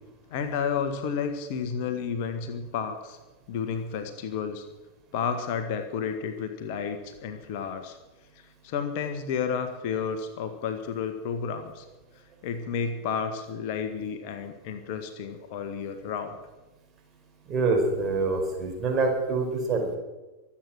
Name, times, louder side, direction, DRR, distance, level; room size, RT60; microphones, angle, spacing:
voice 1, 0.3-3.2 3.5-4.7 5.1-8.0 8.6-11.9 12.4-16.4, left 6 dB, 45° left, 8 dB, 1.6 m, -31 dB
voice 2, 17.5-20.0, right 3 dB, 25° right, 2 dB, 5.0 m, -25 dB
24.5 x 8.7 x 6.3 m, 1.1 s
figure-of-eight pair, 90°, 0 cm